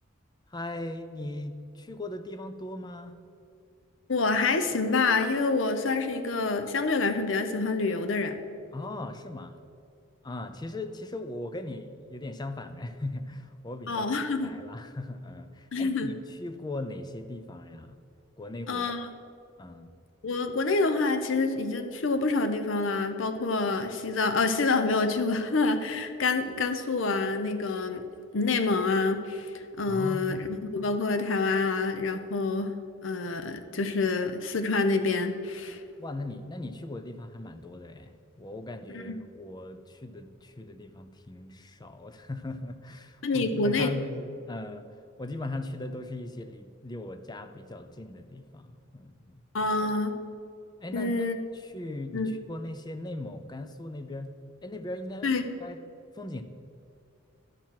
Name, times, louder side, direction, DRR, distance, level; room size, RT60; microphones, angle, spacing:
voice 1, 0.5-3.1 8.7-9.6 10.2-14.1 14.4-18.0 18.4-18.9 19.6-19.9 29.8-30.4 36.0-44.8 45.2-49.7 50.8-51.1 51.5-54.3 54.6-55.3 55.6-55.8 56.1-56.4, left 2 dB, 20° left, 9 dB, 0.5 m, -39 dB
voice 2, 4.1-8.4 13.9-14.5 15.7-16.1 18.7-19.1 20.2-28.0 28.3-32.8 33.0-35.8 38.9-39.1 43.2-43.9 49.5-50.2 50.9-51.4 52.1-52.3 55.2-55.4, left 3 dB, 75° left, 8 dB, 0.7 m, -27 dB
11.5 x 4.6 x 7.4 m, 2.4 s
head